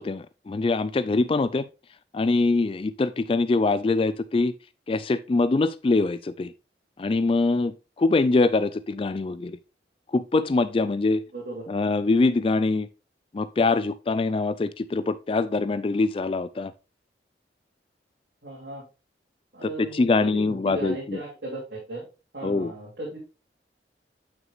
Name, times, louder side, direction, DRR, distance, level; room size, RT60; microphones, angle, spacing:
voice 1, 0.1-1.7 2.1-4.5 4.9-6.5 7.0-9.6 10.1-11.3 11.7-12.9 13.3-16.7 19.8-21.2 22.4-22.7, left 3 dB, 30° left, 0.3 m, -23 dB
voice 2, 11.3-11.7 18.4-18.8 19.5-22.1 22.3-23.2, right 2 dB, 65° right, 2.8 m, -36 dB
9.2 x 6.1 x 2.4 m
head